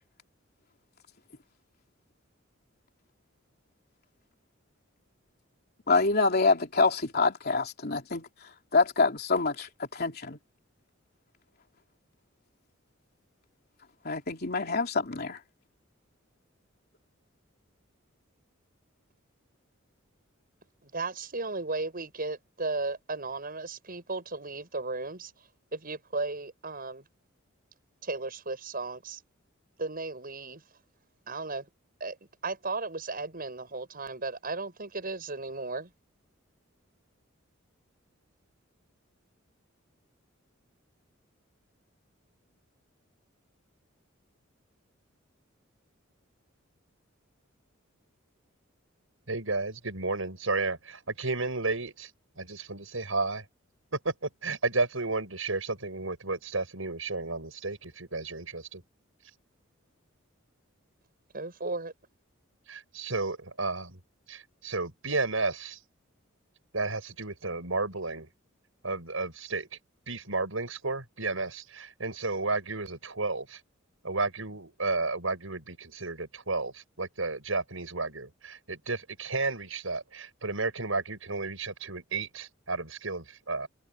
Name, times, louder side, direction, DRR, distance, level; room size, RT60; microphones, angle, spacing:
voice 1, 5.9-8.3 8.7-10.4 14.0-15.4, left 3 dB, 50° left, 3.3 m, -26 dB
voice 2, 20.8-25.3 25.7-27.0 28.0-29.2 29.8-30.6 31.3-31.7 32.0-32.2 32.4-35.9 61.3-61.9, right 3 dB, 45° right, 7.6 m, -35 dB
voice 3, 49.3-52.1 52.4-53.4 54.0-58.8 62.7-64.0 64.3-65.8 66.7-68.3 68.8-69.7 70.1-73.4 74.0-76.7 77.0-83.7, right 3 dB, 80° right, 6.3 m, -32 dB
head